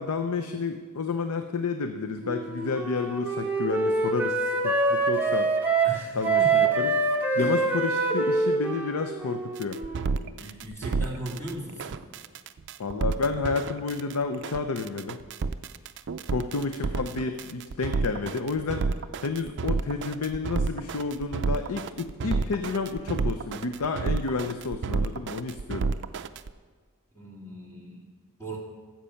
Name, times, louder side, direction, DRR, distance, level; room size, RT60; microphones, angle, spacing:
voice 1, 0.0-5.5 6.1-6.9 7.3-9.8 12.8-15.2 16.3-18.9 19.2-25.9, left 4 dB, 80° left, 7 dB, 0.6 m, -30 dB
Wind instrument woodwind instrument, 2.2-10.2, right 3 dB, 10° right, 1.2 m, -25 dB
voice 2, 5.8-6.5 7.4-7.5 10.4-12.0 27.2-28.1 28.4-28.6, right 1 dB, 10° left, -4 dB, 2.2 m, -38 dB
sound 1, 9.6-26.5, right 4 dB, 55° right, 0.4 m, -29 dB
13.5 x 7.6 x 5.7 m, 1.5 s
head